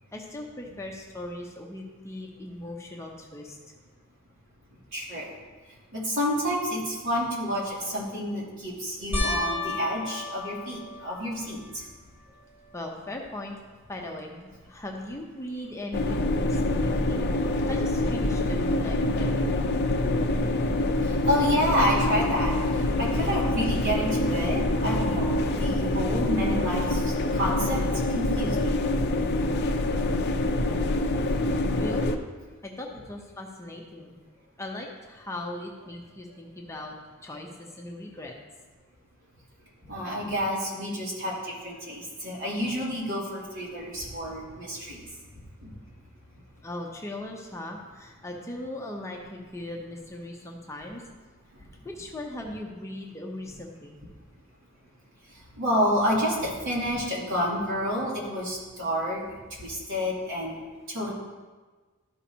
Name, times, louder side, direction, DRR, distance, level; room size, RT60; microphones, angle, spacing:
voice 1, 0.1-3.6 9.7-9.9 12.7-13.6 13.9-19.7 31.6-32.2 32.6-34.1 34.6-37.0 37.2-38.3 43.1-43.4 44.7-44.8 46.6-51.0 51.8-54.0 56.3-56.4, left 1 dB, 15° left, 0 dB, 0.8 m, -39 dB
voice 2, 4.9-5.3 5.9-11.6 21.2-27.0 27.3-27.8 28.1-28.8 39.9-45.0 55.6-59.2 59.6-60.6 60.9-61.1, equal, 65° right, -6 dB, 2.8 m, -29 dB
sound 1, 9.1-11.7 12.3-12.9 13.2-13.3 16.6-16.7, left 2 dB, 10° right, 1.7 m, -33 dB
sound 2, 15.9-32.2, left 1 dB, 50° left, 0.6 m, -26 dB
13.0 x 5.7 x 2.8 m, 1.3 s
head